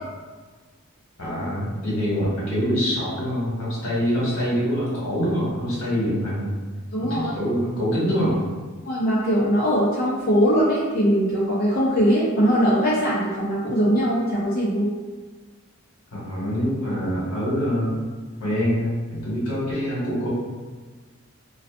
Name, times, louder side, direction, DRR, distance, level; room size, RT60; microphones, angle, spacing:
voice 1, 1.2-6.5 7.0-8.4 16.1-18.1 18.4-20.3, equal, 85° left, -7 dB, 1.1 m, -25 dB
voice 2, 6.9-7.3 8.8-14.9, equal, 45° left, -8 dB, 0.5 m, -21 dB
2.5 x 2.3 x 2.3 m, 1.4 s
head